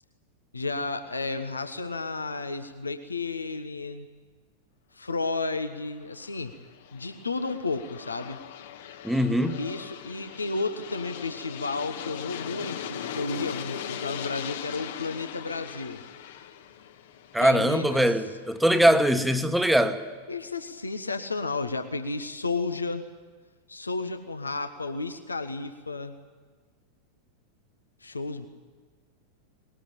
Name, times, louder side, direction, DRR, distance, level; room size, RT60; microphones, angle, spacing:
voice 1, 0.5-4.1 4.9-6.5 6.9-8.4 9.6-16.0 17.4-18.1 20.3-23.1 23.7-26.1 28.0-28.5, left 3 dB, 80° left, 1.2 m, -32 dB
Aircraft, 6.0-18.8, left 9 dB, 55° left, 1.4 m, -40 dB
voice 2, 9.0-9.6 17.3-20.0, equal, 5° right, 1.4 m, -22 dB
20.5 x 19.0 x 9.1 m
figure-of-eight pair, 90°, 0 cm